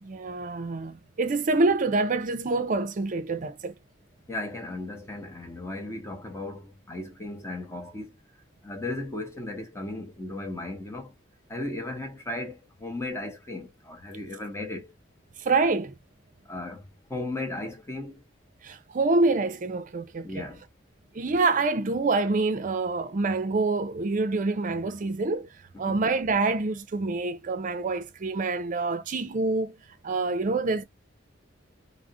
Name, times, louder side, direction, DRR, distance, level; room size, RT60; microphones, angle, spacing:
voice 1, 0.0-3.7 15.4-15.9 18.6-20.5 21.1-25.5 25.8-29.7 30.0-30.8, right 3 dB, 40° right, 0.5 m, -26 dB
voice 2, 4.3-8.1 8.6-11.1 11.5-14.9 16.5-18.2 20.2-20.6 25.8-26.0, left 2 dB, 15° left, 0.7 m, -36 dB
2.4 x 2.1 x 3.6 m
head